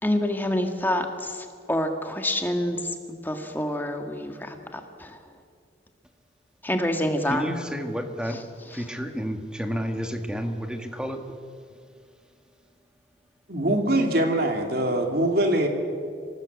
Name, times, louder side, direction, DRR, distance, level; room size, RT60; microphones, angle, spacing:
voice 1, 0.0-2.8 3.2-5.1 6.6-7.5, left 1 dB, 10° left, 4 dB, 1.7 m, -27 dB
voice 2, 7.3-8.4 8.7-11.3, equal, 5° right, 5 dB, 1.6 m, -31 dB
voice 3, 13.5-15.7, right 1 dB, 55° right, 3 dB, 3.0 m, -23 dB
26.5 x 18.0 x 8.3 m, 2.3 s
head